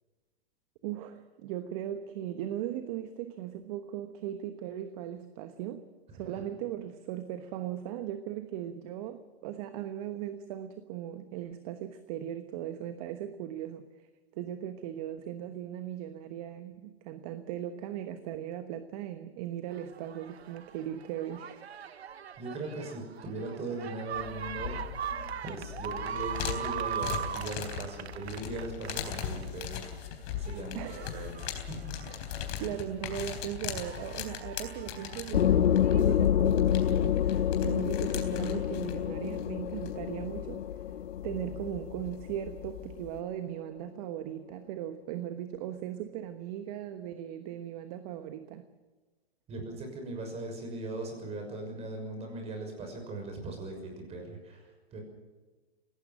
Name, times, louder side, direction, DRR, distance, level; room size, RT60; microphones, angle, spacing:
voice 1, 0.8-5.9 6.1-14.1 14.4-21.7 30.7-31.3 32.0-32.3 32.6-40.6 41.2-48.7, right 11 dB, 35° right, 9 dB, 1.2 m, -38 dB
sound 1, 19.7-29.9 30.3-32.8 33.3-36.2 37.0-37.1, right 8 dB, 90° right, 1.1 m, -40 dB
voice 2, 22.4-24.8 25.1-32.0 32.5-32.7 49.5-55.0, right 2 dB, 20° right, 4 dB, 6.3 m, -39 dB
sound 2, 24.1-43.2, left 9 dB, 40° left, 3.7 m, -40 dB
sound 3, 35.3-42.7, left 10 dB, 85° left, 0.7 m, -27 dB
22.0 x 18.5 x 7.6 m, 1.3 s
hypercardioid pair, 140°, 31 cm